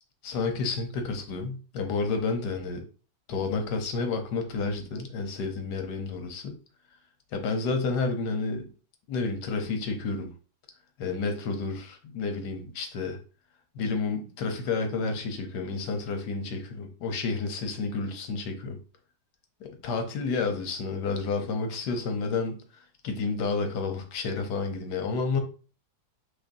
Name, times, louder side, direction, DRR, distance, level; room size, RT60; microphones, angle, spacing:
voice 1, 0.2-2.8 3.3-6.6 7.3-8.7 9.1-10.3 11.0-13.2 13.7-18.8 19.6-22.6 23.0-25.4, left 4 dB, 85° left, 5 dB, 1.4 m, -30 dB
6.3 x 3.2 x 2.6 m, 0.37 s
omnidirectional pair, 1.7 m